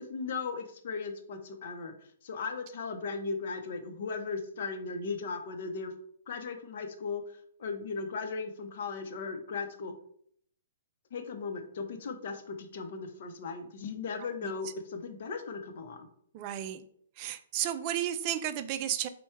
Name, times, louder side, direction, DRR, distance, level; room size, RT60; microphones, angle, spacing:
voice 1, 0.0-1.9 2.2-5.9 6.3-7.2 7.6-9.9 11.1-16.1, left 4 dB, 60° left, 6 dB, 0.7 m, -37 dB
voice 2, 16.3-16.8 17.2-19.1, right 11 dB, 35° right, 10 dB, 0.4 m, -33 dB
4.4 x 2.3 x 4.4 m, 0.64 s
hypercardioid pair, 145°, 0 cm